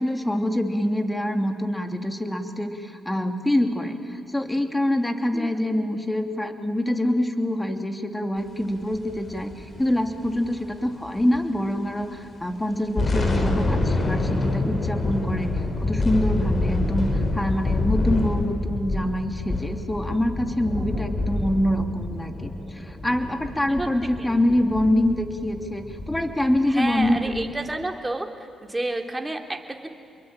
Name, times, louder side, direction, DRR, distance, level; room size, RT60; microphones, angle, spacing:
voice 1, 0.0-15.5 15.8-27.3, left 1 dB, 10° left, 6 dB, 3.0 m, -25 dB
voice 2, 5.3-5.7 20.8-21.0 23.8-23.9 24.2-24.4 26.7-28.3 28.6-29.9, right 2 dB, 15° right, 3 dB, 3.5 m, -30 dB
sound 1, 8.9-11.7 12.0-12.2 12.7-27.5, left 2 dB, 45° left, 4.8 m, -27 dB
29.5 x 22.5 x 9.0 m, 2.5 s
supercardioid pair, 60°, 0 cm